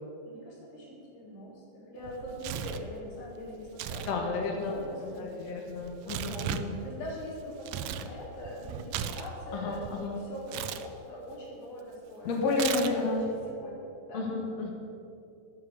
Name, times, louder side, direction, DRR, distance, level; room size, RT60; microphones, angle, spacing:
voice 1, 0.3-1.6 1.9-5.2 6.0-14.3, left 1 dB, 80° left, -5 dB, 5.4 m, -42 dB
Tearing, 2.0-2.9 3.7-4.1 4.4-8.1 8.4-9.9 10.5-10.9 12.5-13.2, right 9 dB, 80° right, 2.2 m, -36 dB
voice 2, 4.1-6.7 9.5-10.2 12.2-13.2 14.1-14.7, left 3 dB, 60° left, 1 dB, 2.3 m, -31 dB
12.5 x 10.5 x 7.0 m, 2.7 s
omnidirectional pair, 3.9 m